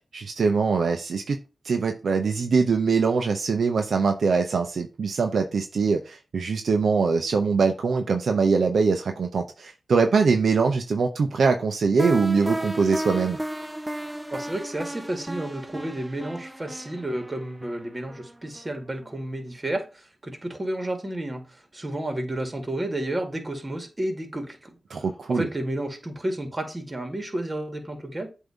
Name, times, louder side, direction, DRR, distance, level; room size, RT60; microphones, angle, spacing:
voice 1, 0.1-1.4 1.6-13.4 24.9-25.5, right 5 dB, 80° right, 0.6 m, -23 dB
sound 1, 12.0-18.8, right 1 dB, 15° right, 0.7 m, -33 dB
voice 2, 14.3-24.7 25.3-28.3, right 1 dB, 35° right, 1.9 m, -31 dB
7.8 x 2.7 x 4.9 m
cardioid pair, 45°, 0 cm